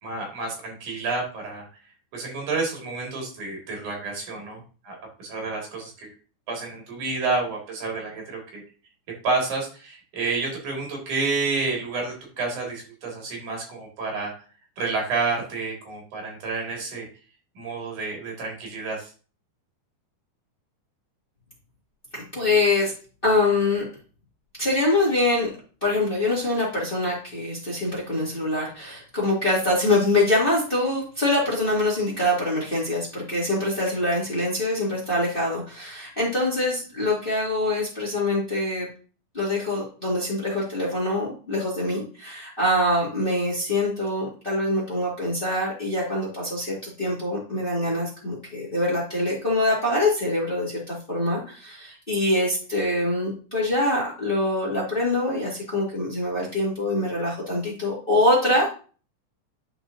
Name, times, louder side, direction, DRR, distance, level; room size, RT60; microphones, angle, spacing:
voice 1, 0.0-1.7 2.1-6.1 6.5-8.6 9.2-14.3 14.8-17.1 17.5-19.1, right 3 dB, 75° right, 0 dB, 3.5 m, -29 dB
voice 2, 22.1-22.9 23.2-23.8 24.6-25.5 25.8-38.9 39.3-58.7, left 1 dB, 20° left, -5 dB, 1.8 m, -24 dB
11.0 x 4.6 x 2.6 m, 0.38 s
omnidirectional pair, 3.6 m